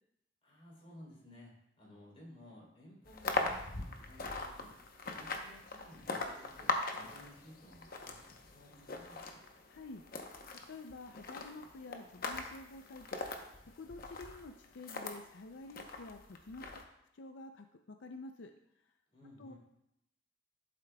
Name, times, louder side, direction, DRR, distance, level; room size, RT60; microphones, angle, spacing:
voice 1, 0.4-1.5 1.8-4.7 5.1-9.2 19.1-19.6, left 1 dB, 35° left, -4 dB, 3.5 m, -56 dB
sound 1, 3.0-15.2 15.7-16.8, left 3 dB, 55° left, 0.9 m, -41 dB
voice 2, 9.7-10.0 10.5-13.2 13.8-16.8 17.1-18.5 19.4-19.5, left 2 dB, 85° left, 6 dB, 0.5 m, -49 dB
12.5 x 7.6 x 2.3 m, 0.79 s
head